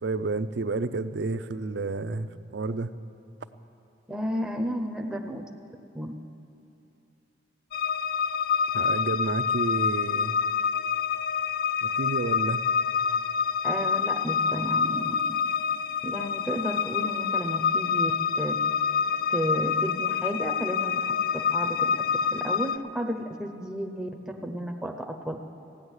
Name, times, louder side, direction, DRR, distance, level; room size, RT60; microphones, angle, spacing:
voice 1, 0.0-2.9 8.7-10.3 11.8-12.6, right 3 dB, 60° right, 13 dB, 0.5 m, -30 dB
voice 2, 4.1-5.4 5.9-6.1 13.6-15.2 16.0-18.6 19.3-22.0 22.3-25.5, equal, 5° right, 2 dB, 0.6 m, -32 dB
sound 1, 7.7-22.8, left 6 dB, 50° left, 0.4 m, -27 dB
16.5 x 9.9 x 8.0 m, 2.7 s
head